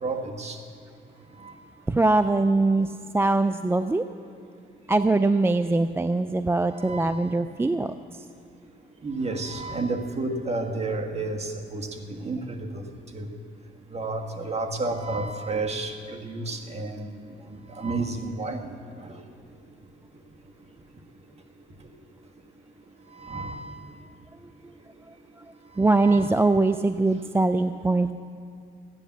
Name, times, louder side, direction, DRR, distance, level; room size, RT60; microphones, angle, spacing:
voice 1, 0.0-0.6 1.4-1.5 6.8-7.2 9.0-12.8 13.1-13.3 13.9-17.1 17.8-18.6 23.2-23.7 25.9-26.3, right 2 dB, 30° right, 3 dB, 1.6 m, -31 dB
voice 2, 1.9-4.0 4.9-7.9 25.8-28.1, right 2 dB, 10° right, 10 dB, 0.4 m, -22 dB
15.5 x 10.0 x 7.3 m, 2.2 s
cardioid pair, 90°, 20 cm